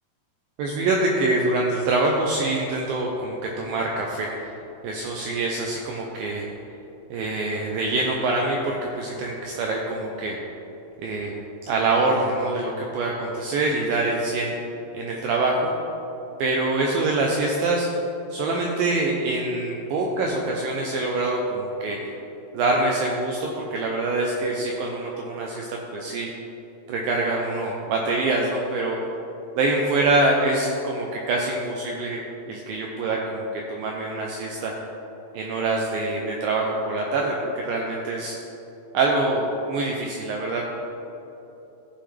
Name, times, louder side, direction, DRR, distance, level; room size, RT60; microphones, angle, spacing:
voice 1, 0.6-4.5 4.8-6.5 7.1-10.4 11.0-11.3 11.7-14.6 14.9-15.7 16.4-17.9 18.3-22.0 22.5-26.3 26.9-29.0 29.6-32.2 32.5-34.7 35.3-38.4 38.9-40.7, right 2 dB, 85° right, 0 dB, 2.0 m, -25 dB
15.0 x 5.7 x 3.3 m, 3.0 s
omnidirectional pair, 4.8 m